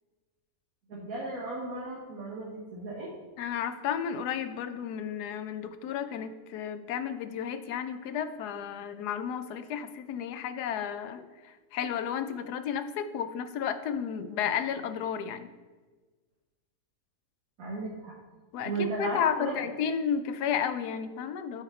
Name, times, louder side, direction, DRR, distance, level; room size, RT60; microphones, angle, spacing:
voice 1, 0.9-3.1 17.6-18.1 18.6-19.6, right 3 dB, 65° right, -3 dB, 1.6 m, -35 dB
voice 2, 3.4-15.5 18.5-21.6, left 8 dB, 90° left, 10 dB, 1.2 m, -32 dB
8.9 x 4.9 x 4.3 m, 1.3 s
omnidirectional pair, 1.7 m